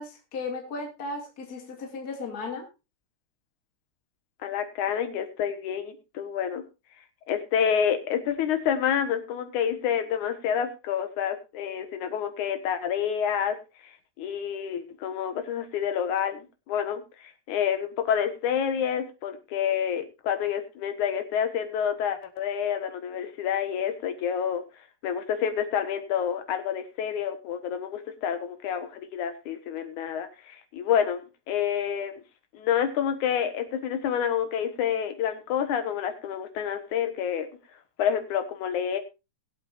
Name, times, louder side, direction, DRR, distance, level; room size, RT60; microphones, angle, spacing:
voice 1, 0.0-2.6, left 3 dB, 35° left, 1 dB, 2.6 m, -35 dB
voice 2, 4.4-6.6 7.3-13.6 13.8-24.6 25.0-32.2 32.5-37.5 38.0-39.0, left 8 dB, 85° left, 7 dB, 2.9 m, -28 dB
21.5 x 8.3 x 2.6 m, 0.28 s
omnidirectional pair, 3.3 m